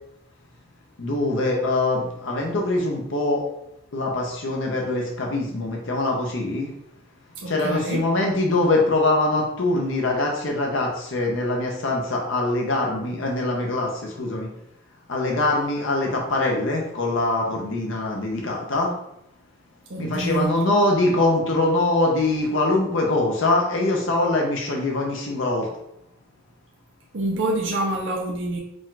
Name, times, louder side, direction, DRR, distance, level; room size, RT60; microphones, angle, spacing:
voice 1, 1.0-3.4 3.9-6.7 7.5-14.5 15.1-18.9 20.0-25.7, left 2 dB, 65° left, 0 dB, 0.7 m, -23 dB
voice 2, 7.4-8.0 19.9-20.6 27.1-28.6, right 2 dB, 60° right, -1 dB, 0.6 m, -26 dB
5.0 x 2.4 x 3.8 m, 0.80 s
head